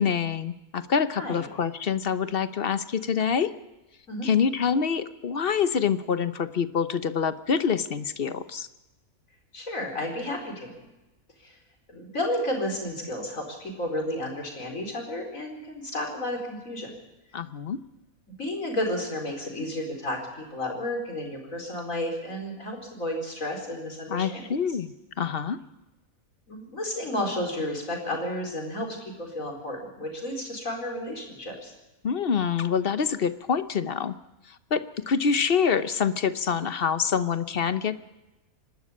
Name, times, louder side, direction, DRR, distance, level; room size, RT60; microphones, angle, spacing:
voice 1, 0.0-3.5 4.2-8.7 17.3-17.8 24.1-25.6 32.0-34.1 34.5-38.1, left 6 dB, 45° left, 13 dB, 0.9 m, -26 dB
voice 2, 9.5-10.7 11.4-11.6 11.9-16.9 18.3-24.5 26.5-31.7, left 1 dB, 65° left, 2 dB, 4.9 m, -32 dB
25.5 x 12.5 x 8.6 m, 1.0 s
omnidirectional pair, 1.5 m